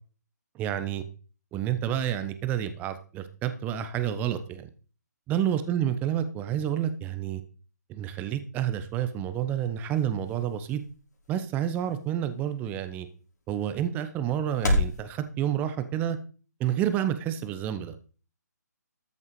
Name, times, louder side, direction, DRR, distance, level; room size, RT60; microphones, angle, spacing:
voice 1, 0.5-1.0 1.5-4.7 5.3-7.4 7.9-10.8 11.3-13.1 13.5-16.2 16.6-17.9, right 10 dB, 15° right, 10 dB, 1.1 m, -29 dB
sound 1, 8.7-15.0, left 1 dB, 75° left, 4.3 m, -34 dB
13.5 x 7.1 x 4.9 m, 0.38 s
figure-of-eight pair, 145°, 10 cm